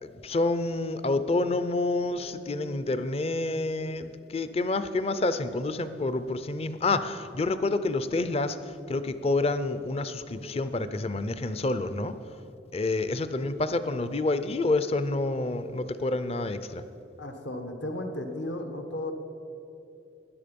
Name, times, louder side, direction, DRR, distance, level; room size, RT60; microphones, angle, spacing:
voice 1, 0.0-12.2 12.7-16.8, left 2 dB, 30° left, 12 dB, 0.5 m, -28 dB
voice 2, 17.2-19.1, left 1 dB, 65° left, 5 dB, 1.2 m, -34 dB
17.0 x 10.5 x 5.3 m, 2.9 s
head